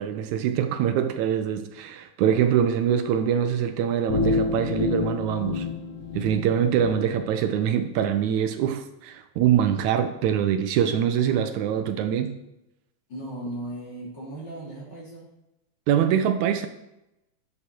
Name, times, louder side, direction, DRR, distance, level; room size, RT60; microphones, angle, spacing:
voice 1, 0.0-5.7 6.2-12.4 15.9-16.7, right 9 dB, 80° right, 2.0 m, -24 dB
sound 1, 4.1-6.9, left 4 dB, 85° left, 2.8 m, -28 dB
voice 2, 13.1-15.3, right 1 dB, 35° left, 3.4 m, -36 dB
12.0 x 7.1 x 4.5 m
omnidirectional pair, 3.5 m